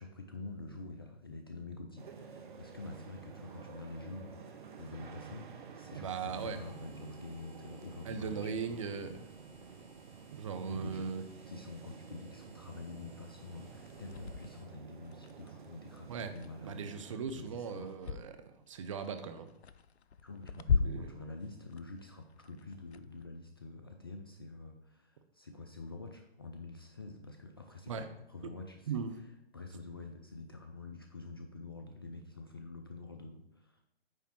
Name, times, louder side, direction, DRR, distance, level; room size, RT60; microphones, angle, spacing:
voice 1, 0.0-8.8 10.7-18.0 20.2-29.1 29.5-33.9, left 3 dB, 25° left, 4 dB, 0.4 m, -47 dB
sound 1, 2.0-17.2, right 6 dB, 50° right, 1.0 m, -51 dB
voice 2, 5.9-6.6 8.0-9.2 10.3-11.2 16.1-16.3 16.6-18.4 18.7-19.5 20.7-21.1 27.9-28.1 28.9-29.2, right 6 dB, 30° right, 8 dB, 0.6 m, -38 dB
sound 2, 6.3-14.6, right 1 dB, 80° right, 3.0 m, -62 dB
sound 3, 13.8-18.3 18.7-23.3, left 5 dB, 85° left, 0.5 m, -38 dB
9.2 x 3.4 x 6.0 m, 0.82 s
figure-of-eight pair, 140°, 31 cm